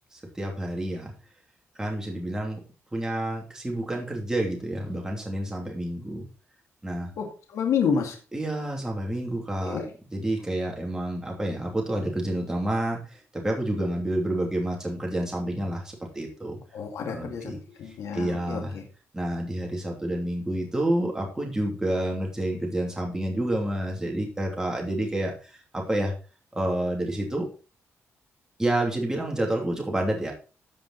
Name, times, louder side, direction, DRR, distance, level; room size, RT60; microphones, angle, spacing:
voice 1, 0.1-1.1 1.8-2.6 2.9-6.2 6.8-7.1 8.3-9.8 10.1-16.6 17.1-17.6 17.9-18.7 19.1-26.1 26.5-27.5 28.6-30.3, right 1 dB, 10° right, 0 dB, 2.8 m, -29 dB
voice 2, 7.2-8.2 9.6-9.9 16.7-18.8, left 6 dB, 80° left, 2 dB, 2.2 m, -29 dB
14.5 x 5.2 x 4.2 m, 0.35 s
cardioid pair, 105°, 5 cm